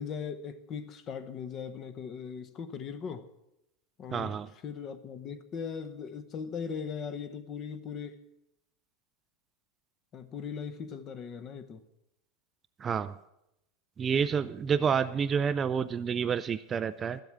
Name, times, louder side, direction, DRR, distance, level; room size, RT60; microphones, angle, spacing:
voice 1, 0.0-3.3 4.0-4.4 4.6-8.2 10.1-11.8, left 6 dB, 30° left, 0.9 m, -39 dB
voice 2, 4.1-4.5 12.8-13.2 14.0-17.2, right 7 dB, 20° right, 0.4 m, -29 dB
13.0 x 7.9 x 7.2 m
supercardioid pair, 150°, 0 cm